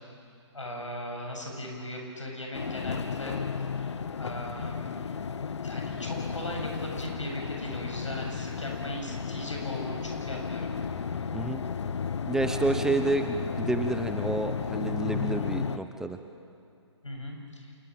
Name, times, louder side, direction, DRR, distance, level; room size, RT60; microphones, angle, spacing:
voice 1, 0.5-3.4 4.2-4.9 5.6-10.7 12.4-12.9 17.0-17.7, left 1 dB, 90° left, 1 dB, 7.8 m, -38 dB
sound 1, 2.5-15.8, left 6 dB, 70° left, 1.0 m, -33 dB
voice 2, 12.3-16.2, right 3 dB, 5° right, 6 dB, 0.8 m, -29 dB
27.0 x 21.5 x 7.8 m, 2.4 s
figure-of-eight pair, 140°, 15 cm